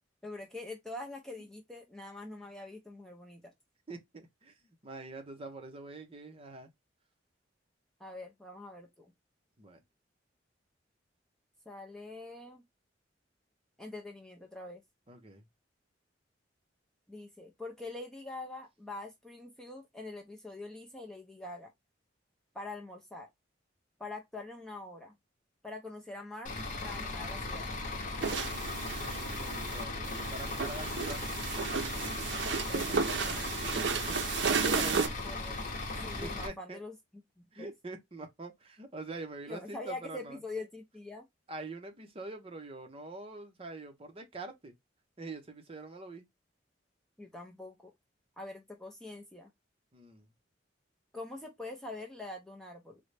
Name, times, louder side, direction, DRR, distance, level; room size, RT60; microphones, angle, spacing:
voice 1, 0.2-3.4 8.0-9.1 11.7-12.6 13.8-14.8 17.1-21.7 22.5-23.3 24.0-25.2 25.6-27.7 32.5-33.6 35.2-35.6 36.0-37.0 37.4-37.7 39.5-41.3 47.2-47.9 48.4-49.5 51.1-53.0, left 2 dB, 5° left, 0.5 m, -44 dB
voice 2, 3.9-4.5 4.8-6.7 9.6-9.8 15.1-15.4 28.6-31.2 34.1-34.2 34.6-35.1 36.2-36.8 37.5-40.4 41.5-44.7 45.2-46.3 49.9-50.3, right 2 dB, 30° right, 0.7 m, -44 dB
Bus / Idling, 26.5-36.5, left 2 dB, 45° left, 0.8 m, -37 dB
sound 1, 28.2-35.1, right 5 dB, 70° right, 0.5 m, -33 dB
3.8 x 2.1 x 3.1 m
head